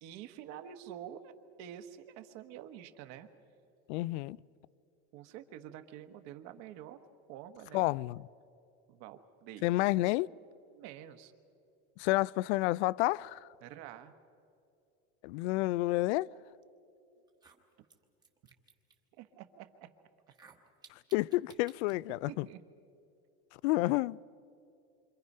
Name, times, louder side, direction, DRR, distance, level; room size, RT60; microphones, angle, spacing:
voice 1, 0.0-1.3 1.6-3.3 5.1-7.0 7.3-7.8 8.9-9.6 10.7-11.3 13.6-14.1 19.1-19.9 22.2-22.6, right 10 dB, 50° right, 1.2 m, -48 dB
voice 2, 3.9-4.4 7.7-8.2 9.6-10.3 12.0-13.4 15.2-16.3 21.1-22.5 23.6-24.2, left 19 dB, 85° left, 0.5 m, -29 dB
sound 1, 16.7-16.8 17.3-19.0 20.2-22.0, right 5 dB, 10° right, 1.0 m, -60 dB
28.0 x 25.5 x 5.4 m
cardioid pair, 175°, 33 cm